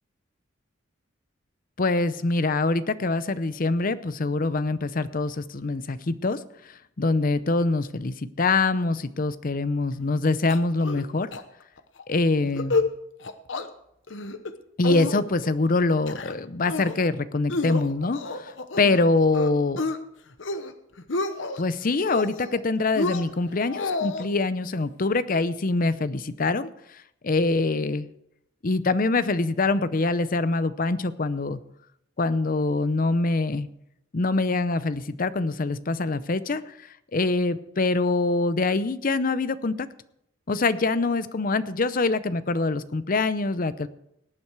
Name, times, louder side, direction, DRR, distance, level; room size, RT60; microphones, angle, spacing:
voice 1, 1.8-6.4 6.7-11.3 12.1-12.8 14.8-18.5 18.8-19.8 21.6-26.7 27.2-28.1 28.6-31.6 32.2-33.7 34.1-36.7 37.1-39.9 40.5-43.9, left 3 dB, 45° left, 15 dB, 0.7 m, -24 dB
sound 1, 10.5-11.0 11.3-11.4 11.8-12.0 12.4-12.9 13.2-13.7 14.1-14.5 14.8-15.5 15.9-16.4 16.7-17.1 17.5-19.0 19.3-20.0 20.3-20.7 21.0-21.6 22.0-22.6 22.9-24.3, left 3 dB, 65° left, 1.0 m, -29 dB
18.5 x 8.7 x 4.7 m, 0.77 s
head